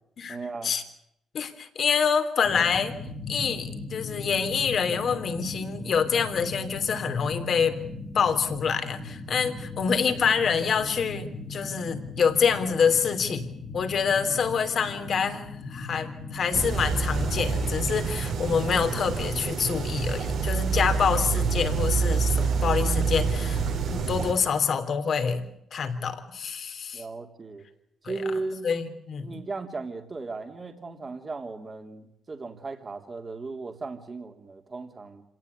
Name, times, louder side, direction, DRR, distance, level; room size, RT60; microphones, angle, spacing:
voice 1, 0.3-0.8 26.9-27.6 28.0-28.7 29.2-35.2, right 3 dB, 30° right, 5 dB, 3.1 m, -36 dB
voice 2, 1.3-2.9 3.3-7.8 8.1-27.0 28.0-28.1 28.6-29.4, left 6 dB, 55° left, 8 dB, 3.3 m, -26 dB
sound 1, 2.4-18.1, left 3 dB, 30° left, 3.0 m, -39 dB
sound 2, 16.5-24.3, right 5 dB, 70° right, 4.2 m, -27 dB
26.5 x 18.0 x 8.3 m, 0.77 s
cardioid pair, 90°, 0 cm